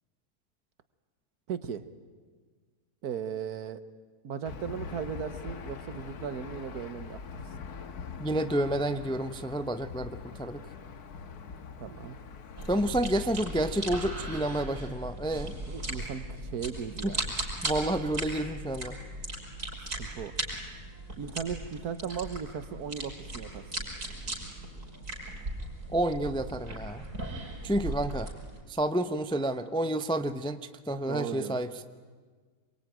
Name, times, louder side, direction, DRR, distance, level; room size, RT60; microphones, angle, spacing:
voice 1, 1.5-1.8 3.0-3.8 4.2-7.4 11.8-12.2 15.7-17.3 20.0-20.3 21.2-23.6 31.1-31.6, right 7 dB, 75° right, 12 dB, 1.6 m, -37 dB
Aircraft / Engine, 4.4-13.0, left 5 dB, 75° left, 1.7 m, -43 dB
voice 2, 8.2-10.6 12.7-15.5 17.0-17.1 17.6-19.0 25.9-27.1 27.6-28.3 28.7-31.7, right 1 dB, 5° left, 10 dB, 0.4 m, -30 dB
sound 1, 12.6-28.6, right 1 dB, 55° right, 5.6 m, -38 dB
26.5 x 23.0 x 9.2 m, 1.5 s
omnidirectional pair, 1.7 m